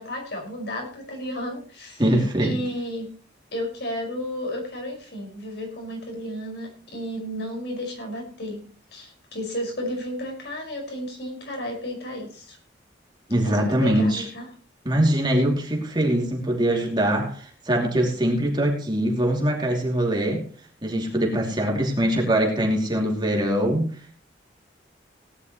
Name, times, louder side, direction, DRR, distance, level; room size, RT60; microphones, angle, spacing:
voice 1, 0.0-3.1 3.5-8.6 8.9-12.6 13.4-14.5, equal, 65° left, 1 dB, 5.6 m, -33 dB
voice 2, 2.0-2.6 13.3-14.3 14.8-20.5 20.8-24.2, right 1 dB, 25° right, 0 dB, 2.8 m, -23 dB
18.0 x 11.0 x 3.1 m, 0.39 s
head